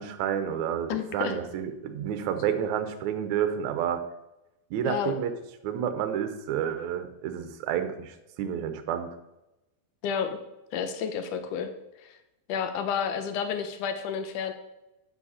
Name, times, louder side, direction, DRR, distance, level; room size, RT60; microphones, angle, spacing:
voice 1, 0.0-4.0 4.7-5.4 5.6-9.1, right 9 dB, 75° right, 8 dB, 1.8 m, -30 dB
voice 2, 0.9-1.3 4.9-5.1 10.0-10.4 10.7-11.7 12.0-12.2 12.5-14.5, left 7 dB, 70° left, 7 dB, 2.1 m, -30 dB
9.5 x 7.5 x 4.2 m, 0.92 s
omnidirectional pair, 4.2 m